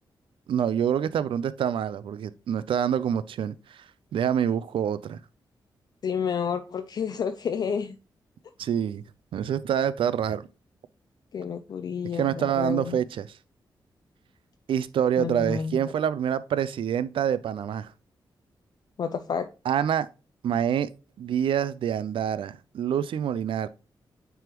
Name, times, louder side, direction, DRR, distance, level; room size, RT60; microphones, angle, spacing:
voice 1, 0.5-3.8 4.1-5.2 8.6-9.0 9.3-10.5 12.1-13.4 14.7-17.9 19.7-20.1 20.4-20.9 21.2-23.7, right 9 dB, 90° right, 0.4 m, -26 dB
voice 2, 6.0-7.9 11.3-13.0 15.2-15.8 19.0-19.5, left 6 dB, 50° left, 0.4 m, -30 dB
9.2 x 3.5 x 3.0 m
wide cardioid pair, 160°, 9 cm